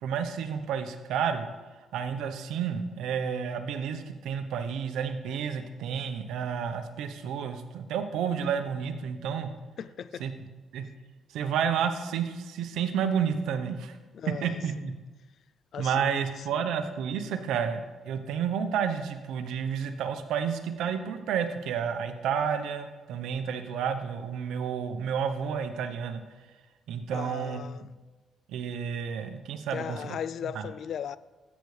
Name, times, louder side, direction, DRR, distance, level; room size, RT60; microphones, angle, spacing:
voice 1, 0.0-1.5 1.9-9.5 10.2-10.3 10.7-10.9 11.3-14.0 14.4-14.9 15.8-26.2 26.9-27.6 28.5-30.2 30.5-30.6, right 7 dB, 85° right, 0.9 m, -30 dB
voice 2, 9.8-10.3 14.1-14.9 15.7-16.5 27.1-27.9 29.7-31.2, left 8 dB, 65° left, 0.3 m, -38 dB
13.5 x 8.2 x 3.3 m
cardioid pair, 90°, 0 cm